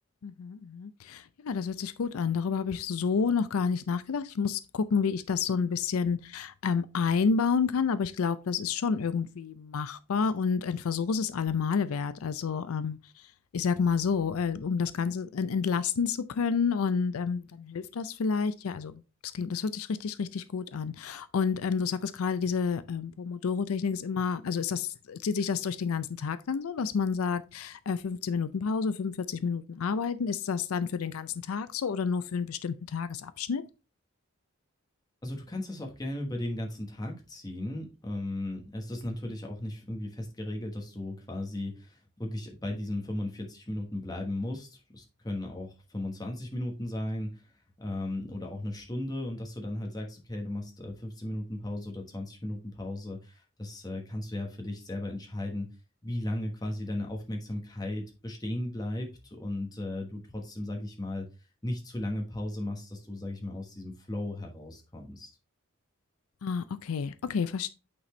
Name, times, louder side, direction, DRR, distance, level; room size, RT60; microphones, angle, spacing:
voice 1, 0.2-13.0 13.5-18.9 19.3-33.6 66.4-67.7, left 5 dB, 85° left, 0.4 m, -29 dB
voice 2, 35.2-47.5 47.8-55.7 56.0-61.3 61.6-65.3, left 1 dB, 20° left, 1.2 m, -36 dB
8.6 x 4.2 x 3.2 m
head